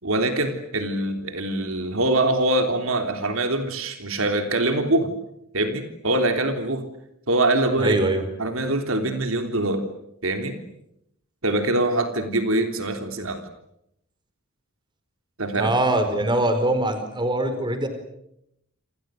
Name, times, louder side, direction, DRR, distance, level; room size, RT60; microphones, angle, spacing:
voice 1, 0.0-5.1 5.5-6.8 7.3-8.0 8.4-9.9 10.2-10.6 11.4-13.4 15.4-15.7, right 2 dB, 70° right, 6 dB, 3.4 m, -23 dB
voice 2, 7.8-8.3 15.6-17.9, right 1 dB, 20° right, 9 dB, 4.7 m, -22 dB
28.5 x 27.5 x 6.5 m, 0.78 s
head